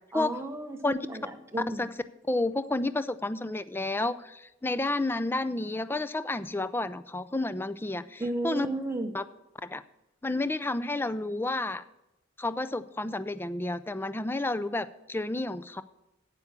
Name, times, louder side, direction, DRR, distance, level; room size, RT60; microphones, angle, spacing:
voice 1, 0.1-1.9 8.2-9.1, right 2 dB, 15° right, 4 dB, 0.9 m, -34 dB
voice 2, 2.3-8.7 9.1-9.2 9.6-9.8 10.2-11.8 12.4-15.8, left 2 dB, 10° left, 14 dB, 0.3 m, -30 dB
8.3 x 8.1 x 7.2 m, 0.92 s
head